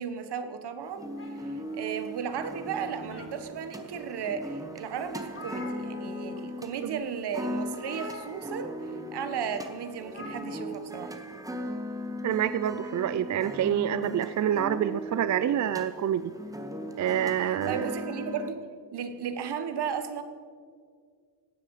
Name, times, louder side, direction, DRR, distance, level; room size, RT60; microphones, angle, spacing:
voice 1, 0.0-11.2 17.4-18.6 18.9-20.2, right 7 dB, 70° right, 9 dB, 1.4 m, -35 dB
sound 1, 1.0-18.5, equal, 10° right, 1.2 m, -38 dB
sound 2, 1.1-2.3 2.8-3.7 4.3-4.4 4.8-4.9 5.0-6.4 6.7-6.9 7.8-8.9 10.1-10.9, left 2 dB, 30° left, 2.0 m, -45 dB
voice 2, 12.2-16.3 17.0-17.9, right 10 dB, 45° right, 14 dB, 0.4 m, -27 dB
17.5 x 12.5 x 4.8 m, 2.1 s
cardioid pair, 120°, 42 cm